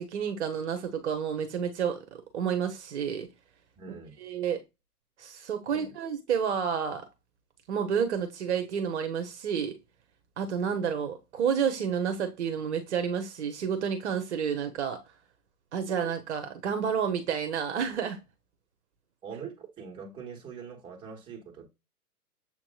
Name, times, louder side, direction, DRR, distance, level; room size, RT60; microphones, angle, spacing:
voice 1, 0.0-2.0 2.3-3.3 3.9-4.6 5.2-7.0 7.7-9.8 10.4-15.0 15.7-18.2, right 7 dB, 45° right, 0.9 m, -30 dB
voice 2, 3.8-4.2 5.7-5.9 19.2-21.7, right 6 dB, 10° right, 1.2 m, -43 dB
7.3 x 2.9 x 2.3 m
figure-of-eight pair, 125°, 47 cm